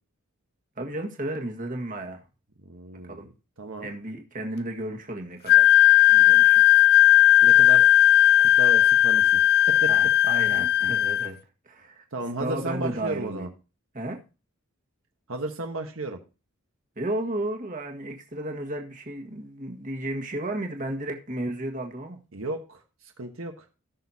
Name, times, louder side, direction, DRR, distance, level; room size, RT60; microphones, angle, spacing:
voice 1, 0.8-2.2 3.0-3.3 3.8-5.7 6.1-6.6 9.9-11.4 11.6-12.0 12.4-13.5 13.9-14.2 16.9-22.2, right 1 dB, 40° right, 1.7 m, -33 dB
voice 2, 2.7-3.3 3.6-3.9 7.4-7.8 8.4-9.4 9.7-9.9 12.1-13.5 15.3-16.2 22.3-22.8 23.2-23.6, right 2 dB, 75° right, 1.3 m, -33 dB
Wind instrument woodwind instrument, 5.5-11.3, left 12 dB, 50° left, 0.5 m, -17 dB
18.0 x 6.5 x 2.8 m
head